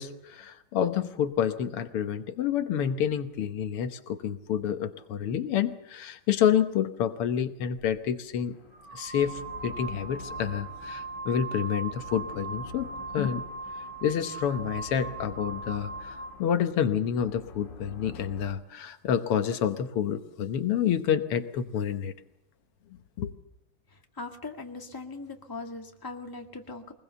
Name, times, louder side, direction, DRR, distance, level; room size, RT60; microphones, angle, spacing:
voice 1, 0.0-8.6 8.9-12.9 13.1-13.4 14.0-22.1 23.2-23.3, left 8 dB, 85° left, 9 dB, 2.0 m, -28 dB
sound 1, 7.8-7.9 8.7-16.4, right 3 dB, 40° right, 4.5 m, -39 dB
sound 2, 8.5-18.5, left 5 dB, 55° left, 2.7 m, -47 dB
voice 2, 24.2-26.9, left 3 dB, 10° left, 3 dB, 1.6 m, -40 dB
22.5 x 20.5 x 6.9 m, 0.84 s
omnidirectional pair, 2.4 m